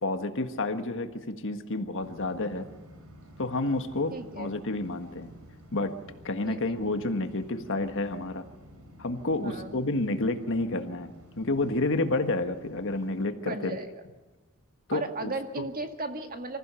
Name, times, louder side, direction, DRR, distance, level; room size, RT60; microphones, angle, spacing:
voice 1, 0.0-2.7 3.4-5.3 5.7-5.9 6.2-8.5 9.0-13.8 14.9-15.3 15.6-15.7, left 2 dB, 60° left, 7 dB, 1.6 m, -30 dB
sound 1, 2.0-13.3, equal, 85° right, 4.7 m, -52 dB
voice 2, 4.1-4.5 6.4-6.6 9.4-9.8 13.5-13.9 14.9-16.6, right 2 dB, 40° right, 5 dB, 1.9 m, -35 dB
25.0 x 15.0 x 7.0 m, 1.3 s
head